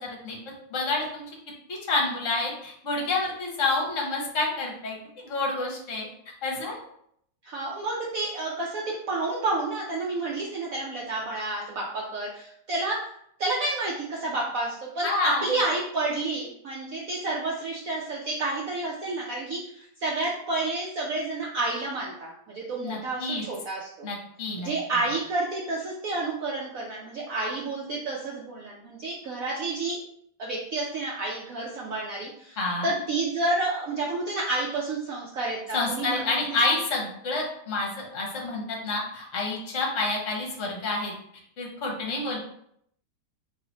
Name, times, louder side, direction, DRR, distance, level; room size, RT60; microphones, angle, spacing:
voice 1, 0.0-0.4 0.7-1.2 1.7-5.0 5.2-6.1 6.4-6.8 15.0-15.5 22.8-23.4 24.0-24.7 32.6-32.9 35.7-41.1 41.6-42.4, left 3 dB, 50° left, -1 dB, 1.2 m, -28 dB
voice 2, 7.4-13.0 13.4-24.1 24.6-30.0 30.4-32.6 32.8-36.6, right 2 dB, 70° right, -3 dB, 0.8 m, -30 dB
3.1 x 3.1 x 3.9 m, 0.69 s
omnidirectional pair, 2.2 m